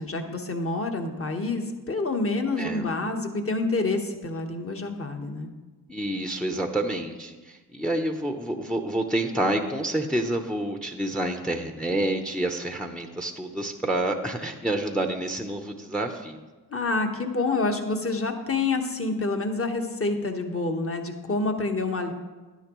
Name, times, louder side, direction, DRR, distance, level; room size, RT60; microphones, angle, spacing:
voice 1, 0.0-5.5 16.7-22.1, left 3 dB, 35° left, 4 dB, 1.3 m, -27 dB
voice 2, 5.9-16.4, right 1 dB, ahead, 5 dB, 0.8 m, -28 dB
11.5 x 10.0 x 3.1 m, 1.3 s
cardioid pair, 55°, 40 cm